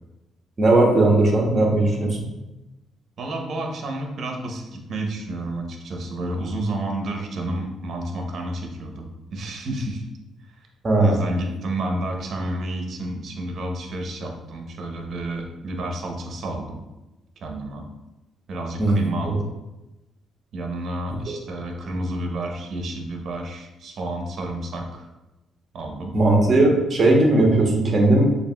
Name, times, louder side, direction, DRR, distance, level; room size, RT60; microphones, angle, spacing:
voice 1, 0.6-2.2 10.8-11.2 18.8-19.4 26.1-28.3, right 2 dB, 35° right, 1 dB, 1.0 m, -18 dB
voice 2, 3.2-10.0 11.0-16.8 17.4-17.9 18.5-19.4 20.5-25.1 25.7-26.1, right 1 dB, 60° right, 2 dB, 0.8 m, -30 dB
6.5 x 2.5 x 2.3 m, 1.0 s
cardioid pair, 90°, 0 cm